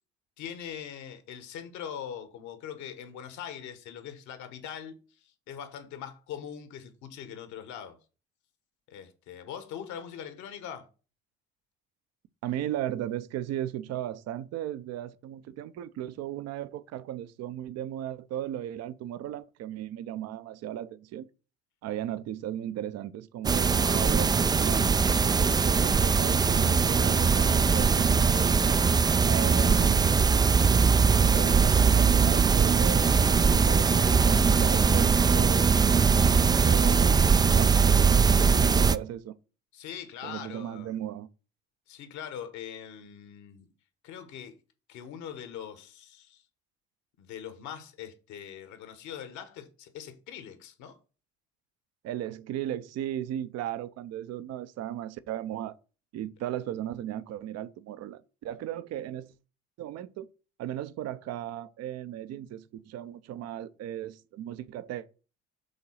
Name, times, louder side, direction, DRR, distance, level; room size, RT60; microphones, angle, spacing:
voice 1, 0.4-8.0 8.9-10.9 39.7-41.0 41.9-43.7 44.0-44.6 44.9-46.4 47.2-51.0, left 9 dB, 60° left, 1.3 m, -42 dB
voice 2, 12.4-21.3 21.8-25.0 25.3-28.6 29.2-30.3 31.3-37.2 37.5-39.3 40.2-41.3 52.0-55.7 56.1-59.3 59.8-60.3 60.6-65.1, right 12 dB, 50° right, 0.7 m, -36 dB
sound 1, 23.4-39.0, right 5 dB, 15° right, 0.3 m, -21 dB
7.2 x 3.8 x 5.6 m
figure-of-eight pair, 50°, 33 cm